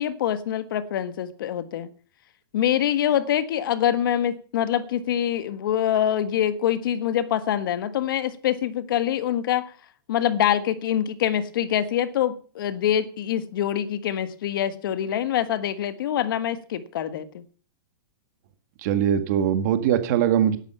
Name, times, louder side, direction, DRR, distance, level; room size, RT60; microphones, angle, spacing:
voice 1, 0.0-1.9 2.5-9.7 10.1-17.4, left 10 dB, 60° left, 1.5 m, -25 dB
voice 2, 18.8-20.6, right 9 dB, 45° right, 1.9 m, -21 dB
12.0 x 11.5 x 5.7 m
hypercardioid pair, 160°, 13 cm